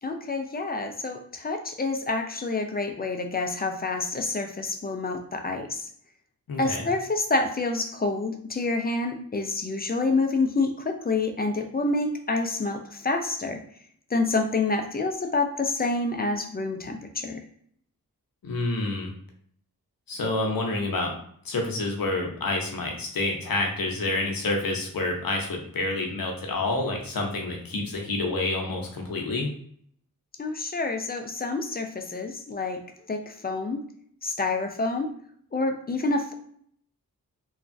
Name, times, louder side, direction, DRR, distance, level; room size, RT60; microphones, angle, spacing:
voice 1, 0.0-5.9 6.6-13.6 14.1-17.4 30.4-32.8 33.1-33.8 34.2-35.1 35.5-36.3, left 3 dB, 25° left, 5 dB, 0.4 m, -28 dB
voice 2, 6.5-6.9 18.4-19.1 20.1-21.2 21.4-29.5, left 2 dB, 70° left, 1 dB, 0.7 m, -28 dB
3.0 x 2.3 x 2.6 m, 0.62 s
wide cardioid pair, 90°, 37 cm